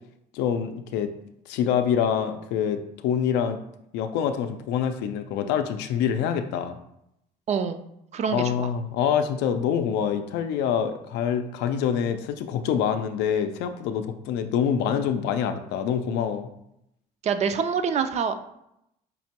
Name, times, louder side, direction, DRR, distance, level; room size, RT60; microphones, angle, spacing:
voice 1, 0.3-1.1 1.5-3.6 3.9-6.8 8.3-16.5, left 8 dB, 90° left, 8 dB, 0.4 m, -26 dB
voice 2, 7.5-7.8 8.1-8.7 17.2-18.3, right 6 dB, 40° right, 9 dB, 0.4 m, -26 dB
5.2 x 2.1 x 2.8 m, 0.79 s
cardioid pair, 110°, 17 cm